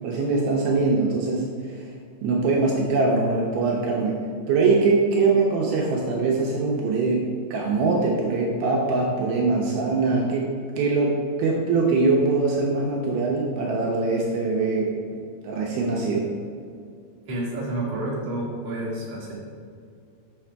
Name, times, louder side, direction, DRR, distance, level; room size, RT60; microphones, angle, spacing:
voice 1, 0.0-1.9 2.2-4.2 4.5-7.3 7.5-14.9 15.4-16.3, right 3 dB, 75° right, -2 dB, 2.5 m, -22 dB
voice 2, 17.3-19.3, right 1 dB, 35° right, -7 dB, 2.1 m, -29 dB
6.6 x 6.2 x 4.5 m, 2.3 s
omnidirectional pair, 4.6 m